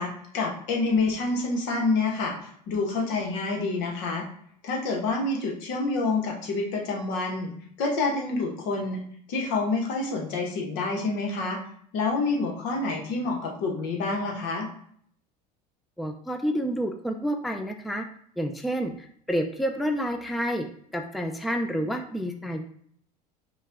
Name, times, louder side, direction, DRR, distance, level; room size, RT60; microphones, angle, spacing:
voice 1, 0.0-4.2 4.6-7.5 7.8-9.0 9.3-11.6 11.9-14.7, left 3 dB, 65° left, 0 dB, 1.4 m, -27 dB
voice 2, 16.0-18.0 18.4-20.7 20.9-22.6, equal, ahead, 4 dB, 0.5 m, -29 dB
5.3 x 2.5 x 3.5 m, 0.62 s
hypercardioid pair, 90°, 21 cm